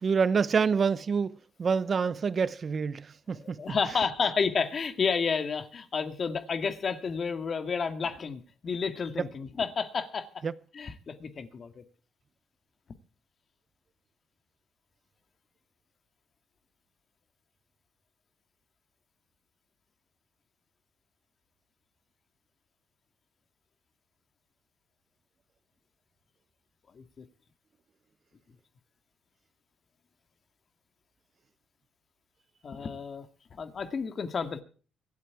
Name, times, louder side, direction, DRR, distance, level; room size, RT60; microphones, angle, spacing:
voice 1, 0.0-3.8 10.4-10.5, right 5 dB, 45° right, 0.8 m, -27 dB
voice 2, 3.4-10.3 10.7-11.8 26.9-27.3 32.6-33.3 33.5-34.6, left 5 dB, 45° left, 2.0 m, -31 dB
25.0 x 8.4 x 4.8 m
cardioid pair, 90°, 0 cm